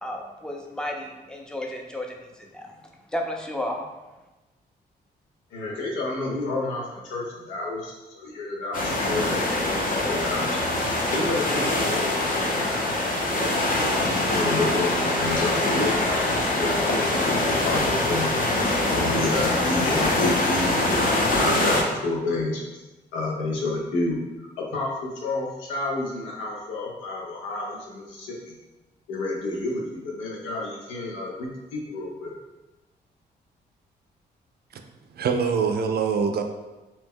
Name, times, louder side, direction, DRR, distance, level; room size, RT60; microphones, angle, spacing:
voice 1, 0.0-2.8 3.1-3.8, left 1 dB, 5° left, 0 dB, 0.5 m, -33 dB
voice 2, 5.5-13.5 14.2-18.3 18.6-22.6 23.1-24.5 24.7-28.5 29.1-32.3, left 2 dB, 90° left, -3 dB, 0.7 m, -30 dB
sound 1, 8.7-21.8, left 2 dB, 45° left, 0.8 m, -24 dB
voice 3, 35.1-36.4, right 6 dB, 55° right, 6 dB, 0.4 m, -24 dB
2.7 x 2.0 x 3.6 m, 1.1 s
supercardioid pair, 55°, 19 cm